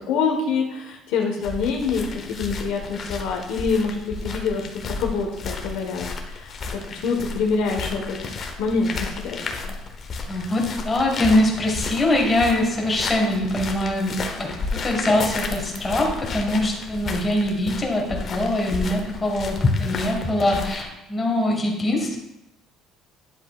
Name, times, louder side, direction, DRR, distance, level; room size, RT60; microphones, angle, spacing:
voice 1, 0.1-9.7, left 4 dB, 80° left, 1 dB, 1.3 m, -26 dB
sound 1, 1.4-20.8, left 4 dB, 35° left, 0.9 m, -33 dB
voice 2, 10.3-22.2, left 1 dB, 15° left, -1 dB, 1.7 m, -23 dB
10.0 x 7.6 x 2.4 m, 0.93 s
cardioid pair, 145°, 0 cm